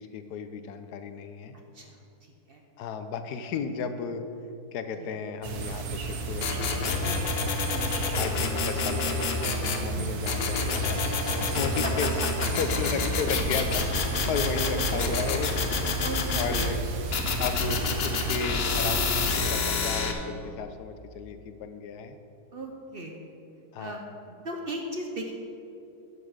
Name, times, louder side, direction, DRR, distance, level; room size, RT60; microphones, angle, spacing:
voice 1, 0.0-1.5 2.8-4.2 4.7-6.6 8.1-12.1 12.6-15.6 16.3-16.8 17.4-22.2 23.7-24.0, left 5 dB, 80° left, 9 dB, 1.2 m, -34 dB
voice 2, 1.7-2.6 5.0-5.1 6.9-7.5 9.9-10.2 11.8-12.0 14.6-15.1 16.0-16.7 22.5-23.2 23.8-25.3, right 1 dB, 45° right, 2 dB, 0.9 m, -38 dB
sound 1, 5.4-19.4, right 4 dB, 70° right, 1.5 m, -33 dB
sound 2, 6.4-9.8 10.3-16.7 17.1-20.1, left 4 dB, 50° left, 0.8 m, -29 dB
11.0 x 5.7 x 6.5 m, 2.7 s
omnidirectional pair, 1.7 m